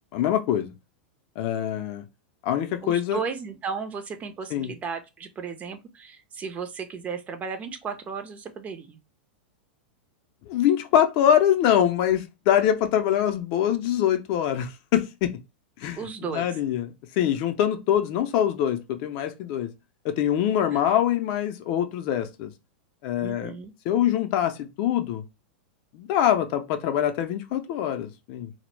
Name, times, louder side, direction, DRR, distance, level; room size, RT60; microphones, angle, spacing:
voice 1, 0.1-0.7 1.4-2.0 2.4-3.2 4.5-4.7 10.4-15.4 15.8-19.7 20.0-22.5 23.0-23.5 23.9-25.2 25.9-28.5, left 10 dB, 50° left, 0.4 m, -24 dB
voice 2, 2.8-9.0 16.0-16.5 20.7-20.9 23.2-23.7, right 5 dB, 25° right, 0.4 m, -35 dB
2.0 x 2.0 x 3.1 m
hypercardioid pair, 105°, 6 cm